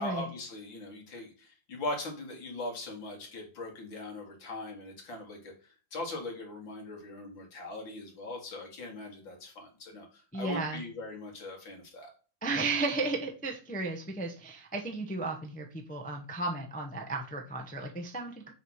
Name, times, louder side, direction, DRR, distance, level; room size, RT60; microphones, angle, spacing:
voice 1, 0.0-12.1, left 2 dB, 80° left, 1 dB, 2.7 m, -40 dB
voice 2, 10.3-10.8 12.4-18.5, right 3 dB, 10° left, 1 dB, 0.5 m, -34 dB
7.0 x 3.1 x 5.5 m, 0.37 s
omnidirectional pair, 2.1 m